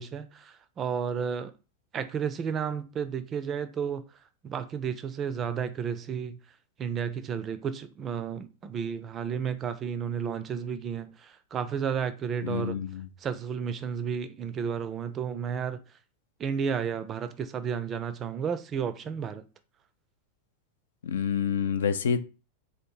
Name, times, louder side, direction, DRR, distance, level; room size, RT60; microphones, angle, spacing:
voice 1, 0.0-1.5 1.9-4.0 4.4-6.4 6.8-12.8 13.2-15.8 16.4-19.4, right 7 dB, 25° right, 0.4 m, -32 dB
voice 2, 12.4-13.1 21.0-22.2, left 7 dB, 65° left, 0.4 m, -28 dB
3.6 x 2.5 x 4.4 m
figure-of-eight pair, 90°, 0 cm